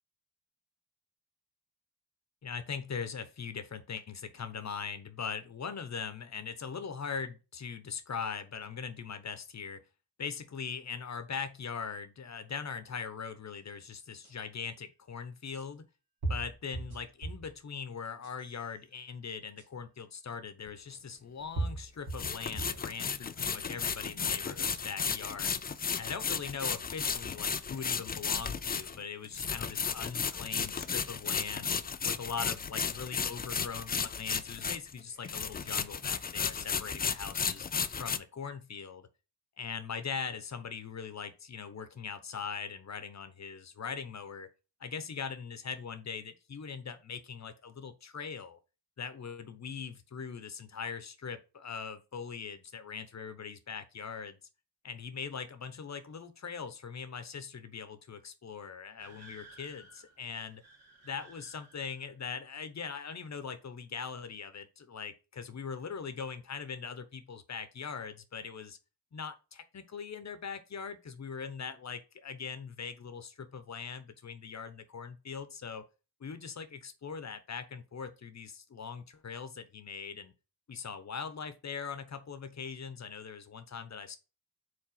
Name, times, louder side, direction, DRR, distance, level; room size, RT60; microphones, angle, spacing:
voice 1, 2.4-9.8 10.2-15.9 16.3-25.6 26.0-31.7 32.0-37.7 38.0-39.1 39.6-44.5 44.8-48.6 49.0-54.4 54.8-60.6 61.0-68.8 69.1-75.8 76.2-80.3 80.7-84.2, left 6 dB, 40° left, 1.0 m, -41 dB
sound 1, 14.2-14.3 15.6-15.7 16.2-17.5 18.1-18.6 19.6-19.7 20.9-21.0 21.6-22.9 23.4-23.9, right 2 dB, 65° right, 2.4 m, -37 dB
sound 2, 20.7-20.8 22.1-35.0 35.2-38.2, left 6 dB, 25° left, 0.4 m, -34 dB
sound 3, 59.0-62.2, right 3 dB, 40° right, 1.8 m, -56 dB
4.9 x 4.1 x 5.6 m
cardioid pair, 95°, 42 cm